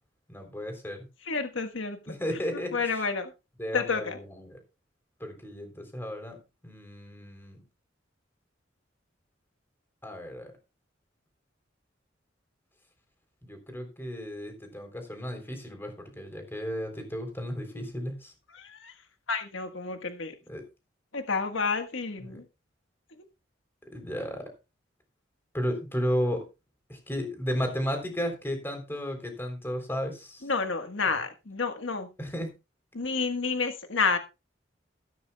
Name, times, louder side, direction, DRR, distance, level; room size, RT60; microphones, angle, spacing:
voice 1, 0.3-1.1 2.1-2.7 3.6-4.6 5.2-6.4 6.6-7.6 10.0-10.5 13.4-18.3 20.5-20.6 22.2-22.4 23.9-24.5 25.5-26.5 26.9-30.4 32.2-32.5, equal, 10° left, 5 dB, 3.6 m, -34 dB
voice 2, 1.3-2.2 2.7-3.3 3.7-4.2 18.5-18.9 19.3-20.3 21.1-22.4 30.4-32.1 32.9-34.2, left 4 dB, 85° left, 6 dB, 1.5 m, -30 dB
15.0 x 13.0 x 2.3 m, 0.27 s
head